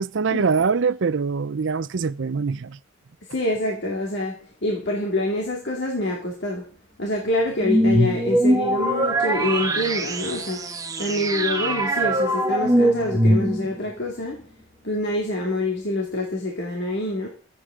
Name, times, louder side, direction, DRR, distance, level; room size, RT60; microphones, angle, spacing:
voice 1, 0.0-2.8, right 5 dB, 60° right, 0.5 m, -23 dB
voice 2, 3.3-6.7 7.0-10.7 11.0-14.4 14.8-17.3, left 1 dB, 55° left, 2.3 m, -26 dB
sound 1, 7.6-13.9, right 1 dB, 15° right, 1.0 m, -22 dB
23.5 x 8.4 x 3.7 m
head